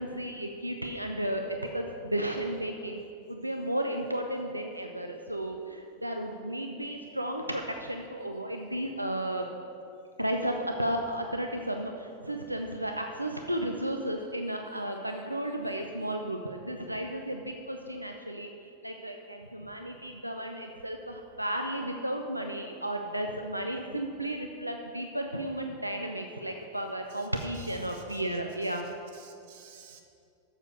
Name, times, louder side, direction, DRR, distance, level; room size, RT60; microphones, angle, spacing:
voice 1, 0.0-3.0 3.3-9.5 10.2-18.5 18.8-28.9, right 1 dB, 85° right, 4 dB, 0.4 m, -33 dB
voice 2, 27.5-28.2 28.6-28.8 29.1-30.0, right 8 dB, 50° right, 4 dB, 1.0 m, -54 dB
7.3 x 6.5 x 6.5 m, 2.6 s
figure-of-eight pair, 90°, 0 cm